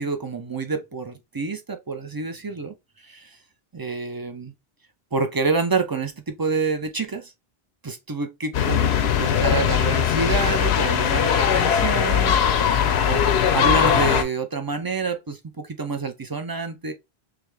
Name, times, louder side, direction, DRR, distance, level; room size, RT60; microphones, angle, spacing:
voice 1, 0.0-2.7 3.0-3.4 3.7-4.5 5.1-7.3 7.8-16.9, right 4 dB, 30° right, 0.4 m, -28 dB
sound 1, 8.5-14.2, left 8 dB, 85° left, 0.9 m, -20 dB
3.4 x 3.3 x 3.2 m
omnidirectional pair, 1.1 m